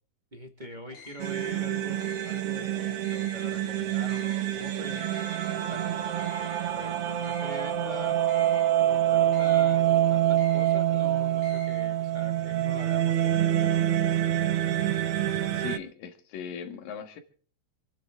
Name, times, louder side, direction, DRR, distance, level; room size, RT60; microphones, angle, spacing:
voice 1, 0.3-8.2 8.9-13.9, right 1 dB, 20° right, 4 dB, 1.4 m, -44 dB
sound 1, 0.9-11.8, left 5 dB, 55° left, 2.7 m, -48 dB
sound 2, 1.2-15.8, right 12 dB, 80° right, 1.3 m, -26 dB
voice 2, 15.5-17.2, left 7 dB, 90° left, 7 dB, 3.3 m, -39 dB
28.0 x 10.0 x 3.6 m, 0.44 s
omnidirectional pair, 3.8 m